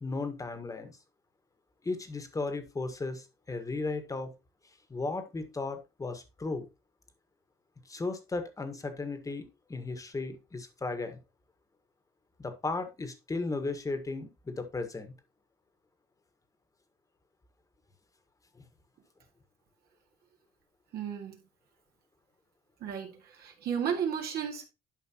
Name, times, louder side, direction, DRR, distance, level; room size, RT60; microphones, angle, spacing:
voice 1, 0.0-1.0 1.8-4.3 4.9-6.7 7.8-9.4 9.7-11.2 12.4-15.1 18.5-18.6, left 3 dB, 20° left, 1.4 m, -35 dB
voice 2, 20.9-21.4 22.8-24.7, right 8 dB, 70° right, 2.1 m, -33 dB
11.5 x 5.1 x 2.9 m
cardioid pair, 110°, 17 cm